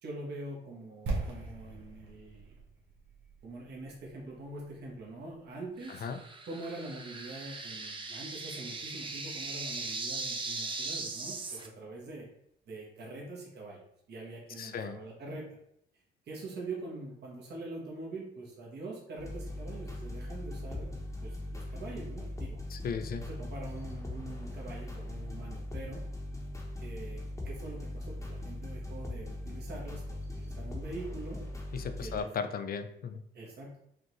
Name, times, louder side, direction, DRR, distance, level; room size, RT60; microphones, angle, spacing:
voice 1, 0.0-2.5 3.4-6.0 6.5-12.3 12.7-13.8 14.1-15.4 16.3-20.9 21.2-22.6 23.1-26.0 26.8-31.4 32.0-32.3 33.3-33.8, right 2 dB, 55° right, -2 dB, 1.1 m, -44 dB
sound 1, 1.1-5.0 5.2-5.4, right 3 dB, 80° right, 1.2 m, -39 dB
sound 2, 5.8-11.7, right 3 dB, 25° right, 0.5 m, -39 dB
voice 2, 14.6-15.0 22.7-23.3 31.7-33.2, left 6 dB, 50° left, 9 dB, 0.5 m, -36 dB
sound 3, 19.2-32.2, left 1 dB, 15° left, 0.9 m, -40 dB
5.0 x 2.5 x 3.0 m, 0.73 s
cardioid pair, 90°, 20 cm